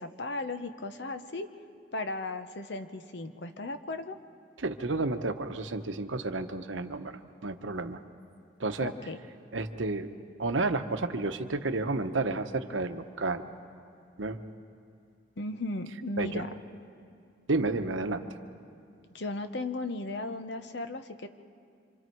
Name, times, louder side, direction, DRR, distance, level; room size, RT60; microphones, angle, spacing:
voice 1, 0.0-1.5 1.9-4.2 8.8-9.2 15.4-16.5 19.1-21.3, left 2 dB, 65° left, 8 dB, 1.0 m, -36 dB
voice 2, 4.6-8.0 8.6-8.9 9.5-10.1 10.4-13.4 14.2-14.4 16.2-16.4 17.5-18.2, right 3 dB, 90° right, 8 dB, 1.0 m, -31 dB
26.5 x 26.5 x 4.7 m, 2.4 s
head